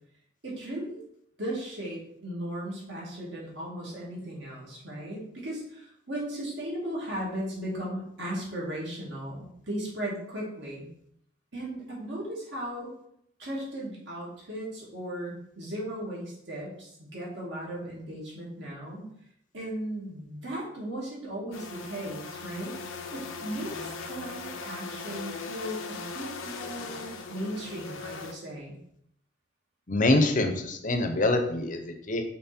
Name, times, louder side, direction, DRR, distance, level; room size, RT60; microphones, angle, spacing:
voice 1, 0.4-1.0 1.4-10.9 11.5-12.9 13.4-19.1 19.5-28.8, right 1 dB, 65° right, -5 dB, 2.5 m, -37 dB
sound 1, 21.5-28.3, left 4 dB, 90° left, 0.8 m, -39 dB
voice 2, 29.9-32.2, left 2 dB, 40° left, 6 dB, 0.7 m, -25 dB
5.7 x 4.5 x 4.3 m, 0.72 s
head